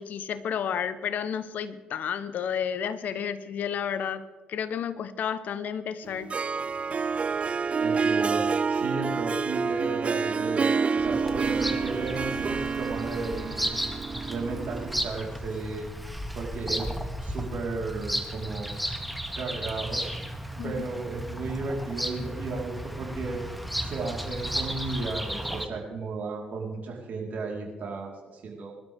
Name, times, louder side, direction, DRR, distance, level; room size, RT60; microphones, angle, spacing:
voice 1, 0.0-6.3 20.6-20.8, left 8 dB, 65° left, 13 dB, 1.1 m, -31 dB
Harp, 6.1-15.0, right 5 dB, 40° right, 0.4 m, -28 dB
voice 2, 7.8-13.7 14.3-15.9 16.3-16.9 17.2-18.7 19.3-20.0 20.6-23.4 23.8-28.7, right 3 dB, 60° right, -1 dB, 4.3 m, -34 dB
Bird vocalization bird call bird song, 11.0-25.7, equal, ahead, 2.0 m, -34 dB
22.5 x 12.5 x 3.7 m, 1.3 s
hypercardioid pair, 45°, 3 cm